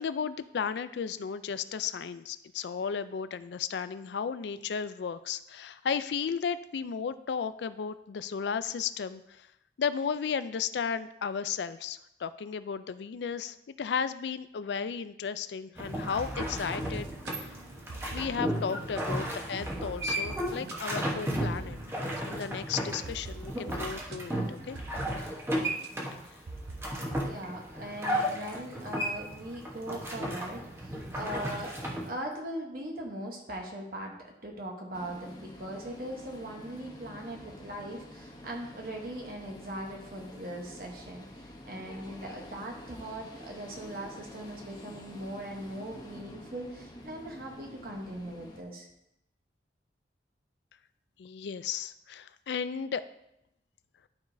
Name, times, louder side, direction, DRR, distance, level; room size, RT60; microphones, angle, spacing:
voice 1, 0.0-9.5 9.8-17.1 17.4-17.5 18.1-21.8 22.2-24.8 51.2-53.0, left 6 dB, 75° left, 13 dB, 0.4 m, -34 dB
sound 1, 15.8-32.1, equal, 15° right, 1.0 m, -34 dB
sound 2, 16.0-25.9 26.5-27.2, right 2 dB, 70° right, 0.5 m, -45 dB
voice 2, 27.2-31.8 32.0-48.9, right 1 dB, 55° right, 0 dB, 1.0 m, -40 dB
sound 3, 34.9-48.6, left 1 dB, 25° left, 0.8 m, -48 dB
11.5 x 4.9 x 2.7 m, 0.82 s
head